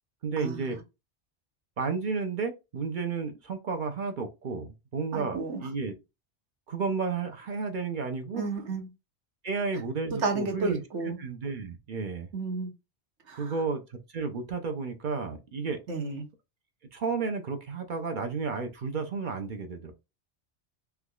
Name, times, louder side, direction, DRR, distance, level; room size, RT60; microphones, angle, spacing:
voice 1, 0.2-0.8 1.8-5.9 6.7-8.6 9.4-12.3 13.3-15.8 16.9-19.9, right 4 dB, 50° right, 0.7 m, -32 dB
voice 2, 5.1-5.6 8.3-8.9 10.2-11.2 12.3-12.7 13.3-13.5 15.9-16.2, right 3 dB, 90° right, 1.3 m, -31 dB
3.5 x 3.0 x 2.3 m
omnidirectional pair, 1.2 m